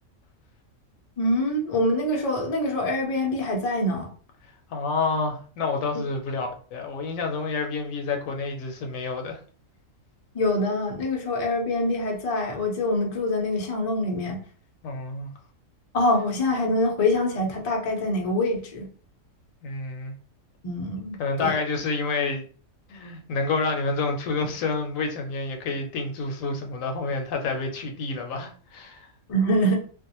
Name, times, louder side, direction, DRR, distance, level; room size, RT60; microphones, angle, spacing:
voice 1, 1.2-4.1 10.3-14.4 15.9-18.9 20.6-21.6 29.3-29.8, left 1 dB, 50° left, 0.4 m, -25 dB
voice 2, 4.7-9.4 14.8-15.3 19.6-20.1 21.2-22.5 22.9-29.1, left 3 dB, 70° left, 0.9 m, -28 dB
2.5 x 2.1 x 2.8 m
omnidirectional pair, 1.5 m